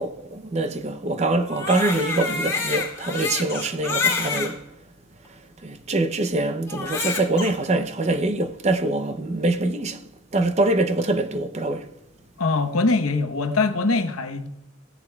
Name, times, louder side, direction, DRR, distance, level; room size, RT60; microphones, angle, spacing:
voice 1, 0.0-4.6 5.6-10.0 10.3-11.9, right 2 dB, 30° right, 0.5 m, -24 dB
Crying sobbing, 1.4-4.5 5.2-5.3 6.7-7.5, left 5 dB, 15° left, 2.1 m, -27 dB
voice 2, 12.4-14.5, left 3 dB, 85° left, 0.9 m, -22 dB
16.0 x 10.5 x 2.3 m
head